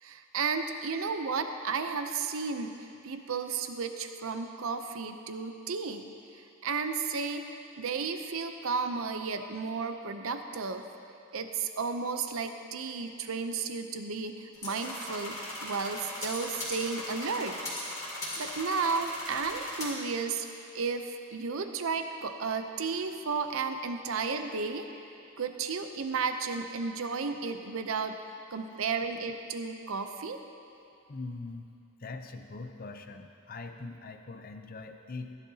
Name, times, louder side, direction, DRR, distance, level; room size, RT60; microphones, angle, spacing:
voice 1, 0.0-6.1 6.6-7.5 7.8-10.8 11.3-17.6 18.4-20.5 20.7-24.9 25.4-28.2 28.5-30.4, right 5 dB, 70° right, 7 dB, 0.6 m, -33 dB
sound 1, 14.5-19.9, left 1 dB, 15° left, 2.7 m, -38 dB
voice 2, 31.1-31.7 32.0-35.4, left 3 dB, 40° left, 6 dB, 0.5 m, -42 dB
16.0 x 10.5 x 2.8 m, 2.6 s
head